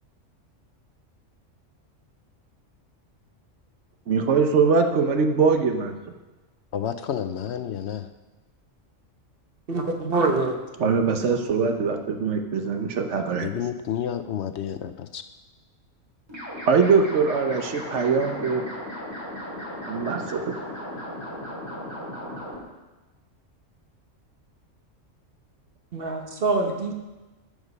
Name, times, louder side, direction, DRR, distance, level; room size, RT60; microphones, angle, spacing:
voice 1, 4.1-5.9 10.8-13.5 16.7-18.6 19.9-20.5, right 5 dB, 65° right, 5 dB, 1.2 m, -22 dB
voice 2, 6.7-8.1 13.4-15.2, left 9 dB, 70° left, 9 dB, 0.8 m, -30 dB
voice 3, 9.7-10.6 25.9-26.9, right 3 dB, 50° right, 3 dB, 1.3 m, -24 dB
sound 1, 16.3-22.6, left 1 dB, 20° right, 3.6 m, -36 dB
14.5 x 5.2 x 5.3 m, 1.1 s
omnidirectional pair, 1.3 m